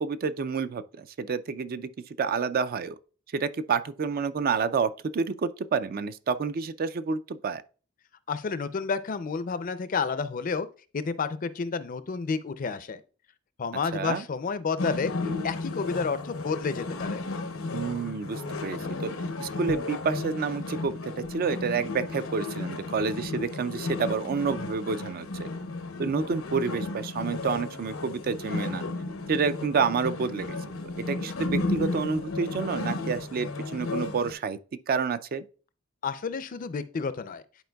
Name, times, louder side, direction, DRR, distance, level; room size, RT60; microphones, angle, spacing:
voice 1, 0.0-1.9 2.2-3.0 3.3-7.6 13.9-14.2 17.7-19.1 19.4-21.0 21.3-25.5 26.0-28.8 29.3-30.6 31.0-34.6 34.9-35.4, right 5 dB, 45° right, 0.4 m, -29 dB
voice 2, 8.3-10.7 10.9-13.0 13.6-15.1 15.4-17.2 36.0-37.4, left 5 dB, 40° left, 0.4 m, -30 dB
sound 1, 14.8-34.3, left 3 dB, 85° left, 0.8 m, -34 dB
10.5 x 4.4 x 2.3 m
head